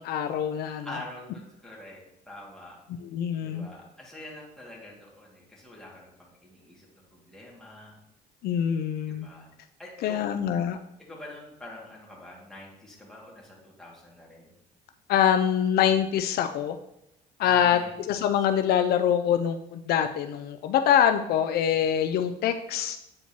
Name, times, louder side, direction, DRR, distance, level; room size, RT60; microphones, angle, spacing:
voice 1, 0.0-0.9 3.0-3.7 8.4-9.3 10.0-10.8 15.1-16.8 17.4-17.8 18.1-23.0, left 9 dB, 70° left, 7 dB, 0.4 m, -24 dB
voice 2, 0.6-2.8 3.4-8.0 9.1-9.5 9.8-10.3 11.0-14.5 17.4-18.3, left 1 dB, 5° left, -4 dB, 2.0 m, -46 dB
8.6 x 4.3 x 2.9 m, 0.82 s
cardioid pair, 110°, 17 cm